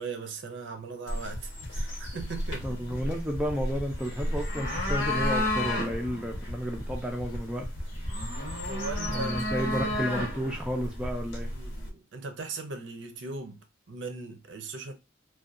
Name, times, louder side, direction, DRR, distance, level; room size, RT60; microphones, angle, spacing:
voice 1, 0.0-2.7 8.7-9.9 11.5-13.6 13.9-14.9, right 3 dB, 70° right, 0.6 m, -39 dB
sound 1, 1.1-11.9, left 1 dB, 90° left, 1.0 m, -32 dB
sound 2, 1.3-10.2, left 1 dB, 60° left, 0.6 m, -41 dB
voice 2, 2.6-7.7 9.0-11.5, equal, 5° right, 0.4 m, -32 dB
2.7 x 2.3 x 2.4 m
head